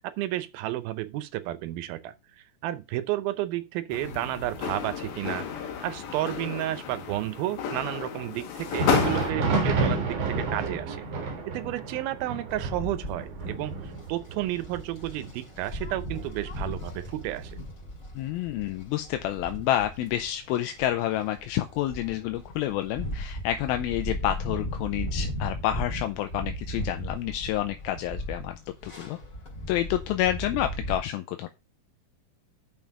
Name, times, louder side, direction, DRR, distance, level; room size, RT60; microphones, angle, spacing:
voice 1, 0.0-2.1 2.6-11.0 11.5-17.6, right 14 dB, 75° right, 2.4 m, -32 dB
sound 1, 3.9-9.3, left 8 dB, 65° left, 2.6 m, -32 dB
Thunder, 8.5-18.0 18.3-18.5 19.2-19.4 20.4-20.5, right 3 dB, 55° right, 2.1 m, -31 dB
sound 2, 12.5-31.0, equal, 25° left, 2.6 m, -37 dB
voice 2, 18.1-29.2 29.7-31.5, left 13 dB, 80° left, 2.3 m, -29 dB
6.5 x 5.5 x 5.9 m
omnidirectional pair, 4.7 m